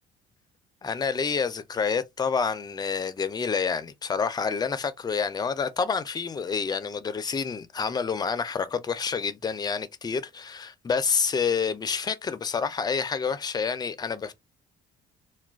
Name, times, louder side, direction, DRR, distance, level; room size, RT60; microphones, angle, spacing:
voice 1, 0.8-14.3, left 5 dB, 25° left, 0.4 m, -28 dB
2.3 x 2.2 x 3.3 m
cardioid pair, 110°, 17 cm